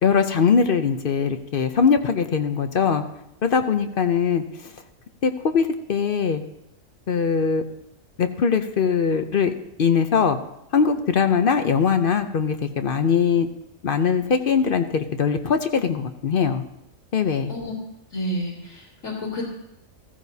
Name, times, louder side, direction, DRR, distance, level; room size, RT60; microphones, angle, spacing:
voice 1, 0.0-3.0 3.4-4.7 5.2-6.4 7.1-7.6 8.2-9.5 9.8-10.4 10.7-13.5 13.8-16.6 17.1-17.5, left 6 dB, 50° left, 8 dB, 0.7 m, -21 dB
voice 2, 18.1-19.4, equal, 85° left, -8 dB, 3.0 m, -30 dB
15.5 x 14.5 x 2.7 m, 0.82 s
omnidirectional pair, 1.4 m